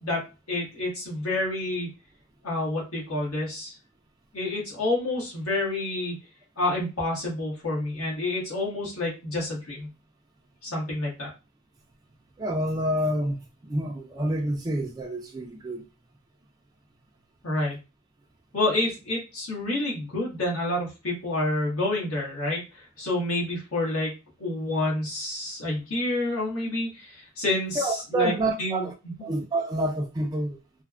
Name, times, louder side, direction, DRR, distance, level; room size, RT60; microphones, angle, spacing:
voice 1, 0.0-1.9 2.4-3.7 4.3-6.1 6.6-9.9 10.6-11.3 17.4-17.8 18.5-24.1 24.4-28.3 28.6-29.1, left 2 dB, 75° left, 1.4 m, -28 dB
voice 2, 12.4-15.9 27.8-28.9 29.2-30.6, right 1 dB, 20° right, 0.3 m, -28 dB
3.2 x 2.1 x 2.4 m
head